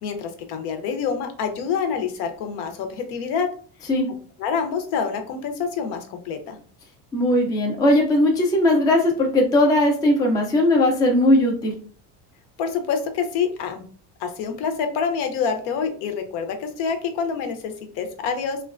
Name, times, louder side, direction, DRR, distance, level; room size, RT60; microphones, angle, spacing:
voice 1, 0.0-3.5 4.4-6.6 12.6-13.8 14.2-18.6, left 6 dB, 65° left, 6 dB, 0.7 m, -27 dB
voice 2, 7.1-11.7, left 1 dB, 10° left, 0 dB, 0.3 m, -18 dB
3.1 x 2.2 x 2.4 m, 0.43 s
cardioid pair, 135°, 43 cm